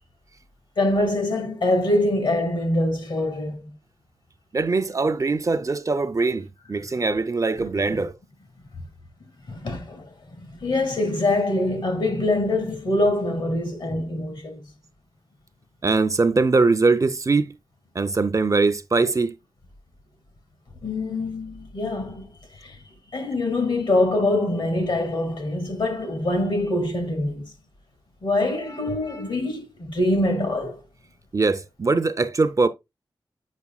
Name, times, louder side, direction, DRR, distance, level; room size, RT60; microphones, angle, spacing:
voice 1, 0.8-3.7 7.9-8.0 9.5-14.6 20.8-22.3 22.6-22.8 23.1-27.5 28.2-30.8, left 1 dB, 70° left, 2.1 m, -24 dB
voice 2, 4.5-8.2 15.8-17.6 17.9-19.4 31.3-32.7, right 3 dB, 40° right, 0.5 m, -22 dB
8.2 x 5.4 x 2.3 m
wide cardioid pair, 90°, 8 cm